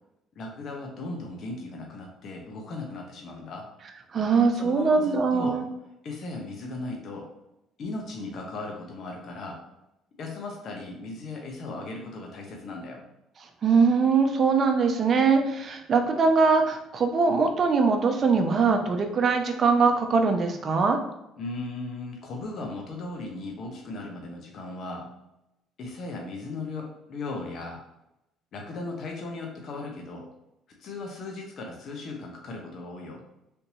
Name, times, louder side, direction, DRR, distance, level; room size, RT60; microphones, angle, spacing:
voice 1, 0.4-3.7 4.5-5.6 6.0-7.3 7.8-9.6 10.2-13.0 21.4-25.1 25.8-27.8 28.5-30.3 30.8-33.2, left 2 dB, 55° left, 1 dB, 0.8 m, -37 dB
voice 2, 4.1-5.6 13.6-21.0, right 4 dB, 45° right, 5 dB, 0.6 m, -22 dB
3.5 x 2.8 x 2.8 m, 0.87 s
supercardioid pair, 80°, 0 cm